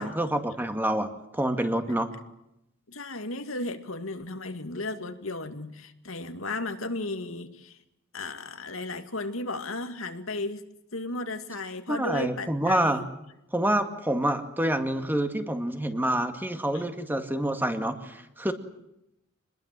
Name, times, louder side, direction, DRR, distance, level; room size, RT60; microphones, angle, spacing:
voice 1, 0.0-2.1 11.9-13.0 13.5-18.5, right 1 dB, 10° right, 2.2 m, -27 dB
voice 2, 2.9-7.8 8.1-10.6 10.9-13.1 16.7-16.8, left 2 dB, 80° left, 2.3 m, -35 dB
26.5 x 21.0 x 7.7 m
head